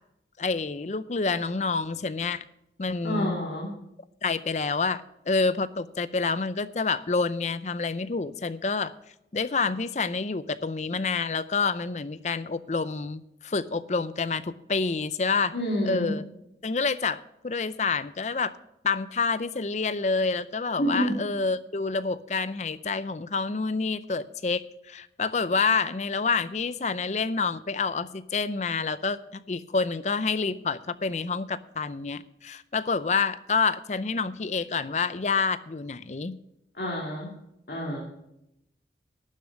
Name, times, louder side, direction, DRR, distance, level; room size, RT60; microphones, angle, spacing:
voice 1, 0.4-2.4 2.8-3.4 4.2-8.9 9.3-15.5 15.8-16.2 16.6-17.2 17.4-18.5 18.8-24.6 24.9-36.4, left 4 dB, 40° left, 15 dB, 0.5 m, -28 dB
voice 2, 3.0-3.7 15.5-16.1 20.8-21.1 36.7-37.3 37.7-38.0, equal, 60° left, -3 dB, 2.4 m, -28 dB
12.0 x 7.0 x 6.5 m, 0.81 s
head